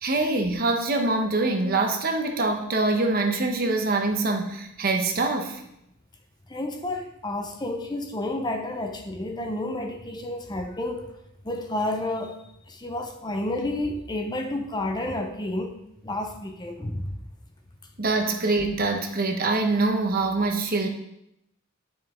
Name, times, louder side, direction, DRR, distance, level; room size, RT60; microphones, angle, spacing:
voice 1, 0.0-5.6 18.0-20.9, right 3 dB, 45° right, 4 dB, 0.9 m, -24 dB
voice 2, 6.5-11.1 11.4-12.4 12.7-15.8 16.0-17.1, left 1 dB, 20° left, 4 dB, 0.7 m, -30 dB
9.1 x 6.3 x 3.6 m, 0.81 s
head